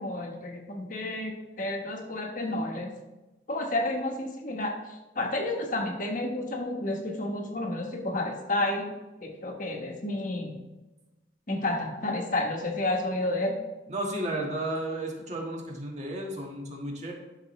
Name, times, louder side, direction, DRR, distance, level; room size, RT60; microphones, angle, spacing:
voice 1, 0.0-2.9 3.5-8.9 9.2-10.6 11.5-13.6, left 2 dB, 45° left, 2 dB, 1.3 m, -31 dB
voice 2, 13.9-17.1, right 1 dB, 35° right, 0 dB, 1.6 m, -33 dB
12.0 x 6.0 x 3.2 m, 1.1 s
head